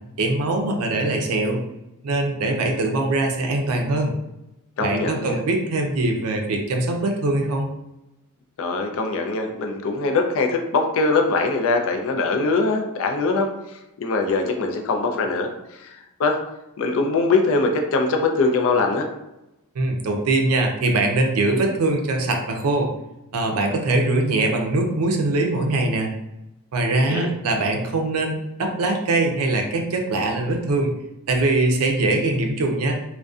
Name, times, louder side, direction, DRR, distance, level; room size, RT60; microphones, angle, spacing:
voice 1, 0.2-1.6 2.0-4.1 4.8-7.7 19.8-22.9 23.3-26.1 26.7-30.9 31.3-32.9, right 2 dB, 75° right, 3 dB, 0.5 m, -22 dB
voice 2, 4.8-5.4 8.6-13.5 14.0-16.4 16.8-19.1 27.1-27.3, left 3 dB, 65° left, 4 dB, 0.4 m, -22 dB
2.5 x 2.1 x 2.3 m, 0.91 s
head